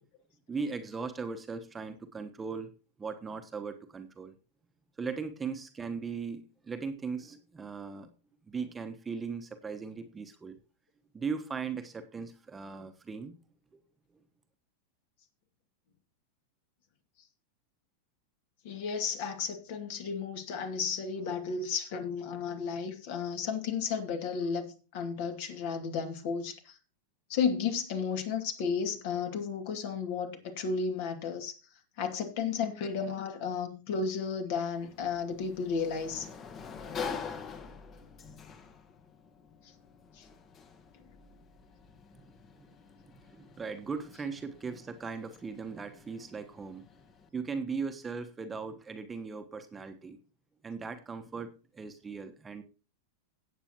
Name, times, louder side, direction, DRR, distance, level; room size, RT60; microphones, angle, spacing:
voice 1, 0.5-2.7 3.0-4.3 5.0-8.1 8.5-10.6 11.1-13.4 13.7-13.8 42.1-42.7 43.3-46.8 47.3-50.2 50.6-52.6, right 5 dB, 15° right, 1.2 m, -38 dB
voice 2, 18.6-26.8 27.3-31.6 32.0-36.3 40.1-40.3, left 6 dB, 55° left, 2.3 m, -33 dB
Sliding door, 34.6-47.3, left 6 dB, 30° left, 1.4 m, -46 dB
17.0 x 8.1 x 3.0 m
figure-of-eight pair, 90°, 0 cm